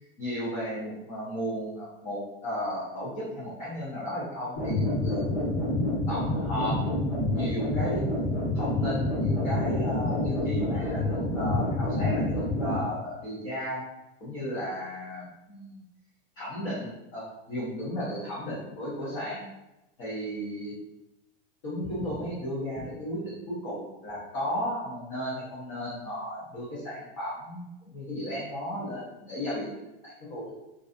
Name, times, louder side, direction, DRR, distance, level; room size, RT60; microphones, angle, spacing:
voice 1, 0.2-8.1 8.5-13.8 14.2-15.8 16.4-19.5 20.0-20.7 21.6-30.5, equal, 20° left, -10 dB, 0.4 m, -34 dB
sound 1, 4.5-12.8, left 1 dB, 55° left, 1.1 m, -27 dB
2.5 x 2.3 x 2.4 m, 0.95 s
supercardioid pair, 175°, 31 cm